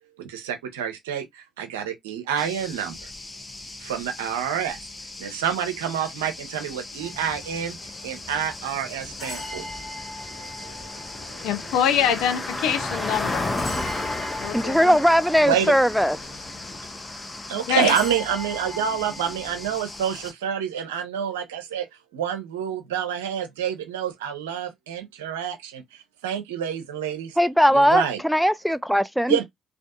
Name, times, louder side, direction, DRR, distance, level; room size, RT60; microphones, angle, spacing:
voice 1, 0.2-3.1 3.8-4.8 5.2-7.8 8.0-9.7 10.3-11.5 15.4-15.7 17.5-21.9 22.1-27.4 27.7-28.2 29.3-29.4, right 8 dB, 85° right, 0.5 m, -28 dB
sound 1, 2.4-20.3, left 2 dB, 25° left, 0.7 m, -35 dB
sound 2, 7.0-19.7, left 2 dB, 45° left, 1.3 m, -41 dB
voice 2, 11.4-13.5 14.4-15.0 17.5-18.0, left 9 dB, 75° left, 0.4 m, -24 dB
voice 3, 14.5-16.2 27.4-29.4, equal, ahead, 0.4 m, -19 dB
2.5 x 2.4 x 2.2 m
hypercardioid pair, 50°, 0 cm